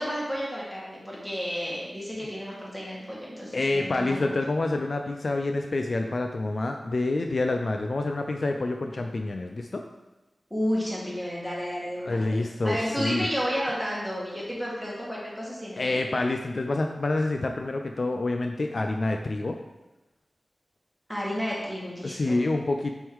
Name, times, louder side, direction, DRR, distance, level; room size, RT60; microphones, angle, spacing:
voice 1, 0.0-4.4 10.5-12.2 12.6-16.0 21.1-22.4, equal, ahead, -5 dB, 1.8 m, -31 dB
voice 2, 3.5-9.8 12.0-13.3 15.8-19.6 22.0-22.9, left 2 dB, 55° left, 4 dB, 0.3 m, -27 dB
6.0 x 3.7 x 4.7 m, 1.1 s
wide cardioid pair, 100°, 0 cm